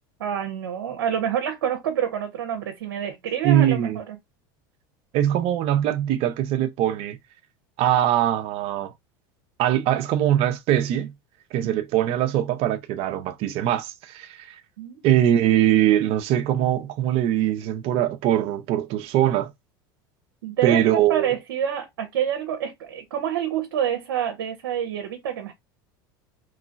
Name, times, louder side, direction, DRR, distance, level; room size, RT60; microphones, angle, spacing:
voice 1, 0.2-4.2 11.6-11.7 14.8-15.0 20.4-25.5, right 9 dB, 90° right, 0.7 m, -27 dB
voice 2, 3.4-4.0 5.1-7.2 7.8-8.9 9.6-11.1 11.5-14.5 15.0-19.5 20.6-21.3, right 11 dB, 55° right, 0.6 m, -22 dB
3.1 x 2.2 x 3.8 m
supercardioid pair, 105°, 12 cm